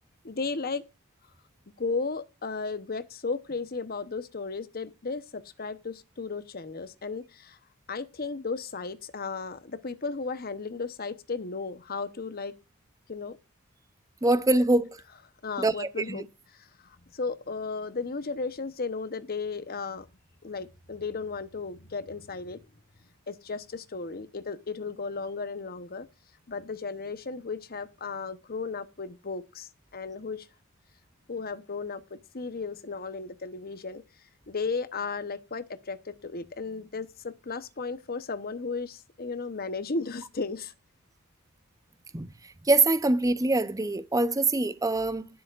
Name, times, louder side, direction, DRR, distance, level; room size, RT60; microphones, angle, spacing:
voice 1, 0.2-0.8 1.8-7.6 7.9-12.5 13.1-13.4 15.4-16.3 17.1-20.1 20.4-22.6 23.3-26.1 26.5-30.5 31.3-34.0 34.5-40.7, left 4 dB, 45° left, 0.9 m, -35 dB
voice 2, 14.2-15.0 15.6-16.2 42.1-45.3, right 2 dB, 15° right, 0.7 m, -24 dB
20.0 x 8.0 x 2.5 m
head